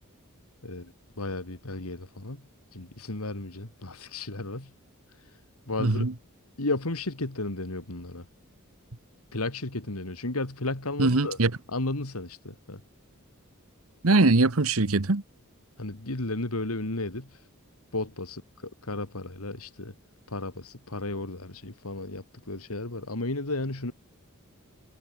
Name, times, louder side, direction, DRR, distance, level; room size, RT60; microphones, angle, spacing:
voice 1, 1.2-2.4 2.7-4.7 5.7-6.1 6.6-8.2 9.3-11.4 11.7-12.8 15.8-17.3 17.9-18.4 18.9-19.9 20.3-23.9, left 2 dB, 80° left, 2.6 m, -33 dB
voice 2, 5.8-6.1 11.0-11.5 14.0-15.2, right 2 dB, 70° right, 1.3 m, -22 dB
head